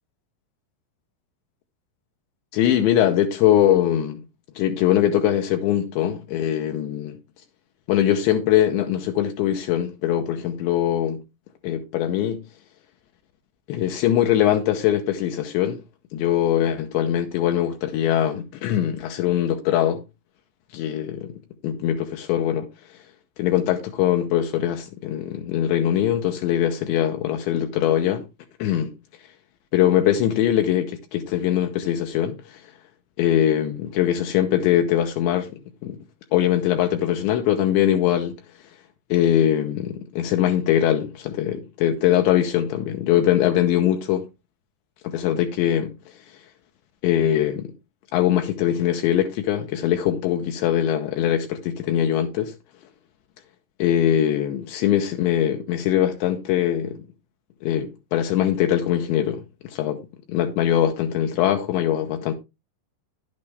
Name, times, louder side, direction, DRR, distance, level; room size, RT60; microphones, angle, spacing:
voice 1, 2.5-4.2 4.6-7.2 7.9-11.2 11.6-12.4 13.7-15.8 16.1-20.0 20.7-21.3 21.6-22.7 23.4-28.2 28.6-28.9 29.7-32.6 33.2-35.5 35.8-36.0 36.3-38.4 39.1-44.3 45.0-45.9 47.0-47.7 48.1-52.5 53.8-57.0 57.6-60.0 60.3-62.3, left 11 dB, 75° left, 3.0 m, -22 dB
10.5 x 8.6 x 3.3 m
omnidirectional pair, 5.5 m